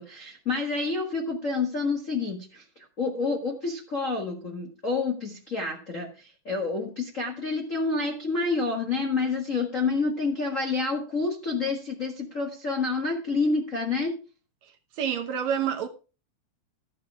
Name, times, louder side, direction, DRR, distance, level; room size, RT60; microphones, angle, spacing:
voice 1, 0.0-2.6 3.0-14.1, left 3 dB, 40° left, 1.1 m, -28 dB
voice 2, 15.0-15.9, right 8 dB, 70° right, 2.0 m, -27 dB
13.0 x 7.5 x 4.7 m
omnidirectional pair, 3.7 m